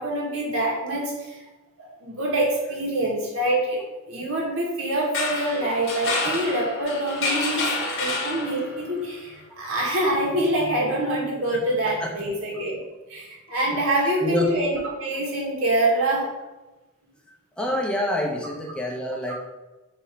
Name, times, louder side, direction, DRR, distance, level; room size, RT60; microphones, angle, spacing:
voice 1, 0.0-1.4 1.8-12.8 13.1-16.3 19.3-19.4, right 1 dB, 75° right, -3 dB, 2.0 m, -25 dB
sound 1, 5.0-8.9, left 3 dB, 65° left, 2.0 m, -28 dB
voice 2, 17.6-19.3, left 1 dB, 5° left, -1 dB, 1.0 m, -26 dB
6.7 x 2.9 x 5.3 m, 1.1 s
head